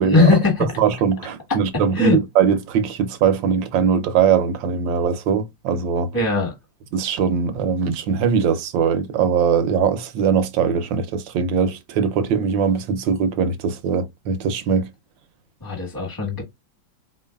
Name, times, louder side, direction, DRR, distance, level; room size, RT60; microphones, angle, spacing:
voice 1, 0.0-0.7 1.9-2.2 6.1-6.5 15.6-16.4, left 3 dB, 10° left, 1.4 m, -19 dB
voice 2, 0.6-6.1 6.9-14.9, right 6 dB, 80° right, 1.4 m, -21 dB
4.3 x 3.1 x 2.2 m
omnidirectional pair, 2.0 m